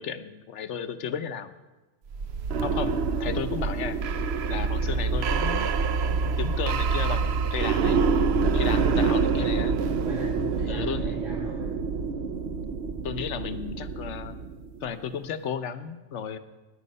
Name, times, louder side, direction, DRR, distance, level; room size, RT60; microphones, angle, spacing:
voice 1, 0.0-1.5 2.6-4.0 4.5-5.7 6.1-8.0 8.4-9.8 10.7-11.1 13.0-14.4 14.8-16.4, left 7 dB, 70° left, 10 dB, 1.1 m, -34 dB
sound 1, 2.1-14.9, right 5 dB, 60° right, 0.9 m, -26 dB
voice 2, 8.7-9.0 10.0-11.7, right 1 dB, 80° right, -5 dB, 2.6 m, -40 dB
17.5 x 10.5 x 5.4 m, 1.1 s
omnidirectional pair, 1.3 m